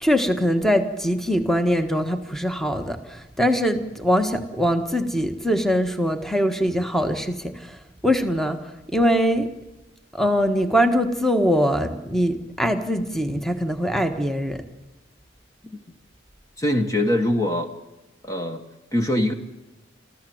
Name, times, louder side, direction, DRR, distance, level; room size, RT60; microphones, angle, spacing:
voice 1, 0.0-7.7 8.0-8.6 8.9-9.5 10.1-14.6, equal, ahead, 7 dB, 1.5 m, -22 dB
voice 2, 16.6-17.7 18.2-18.6 18.9-19.3, left 1 dB, 20° left, 6 dB, 1.3 m, -23 dB
26.5 x 15.0 x 7.9 m, 1.0 s
head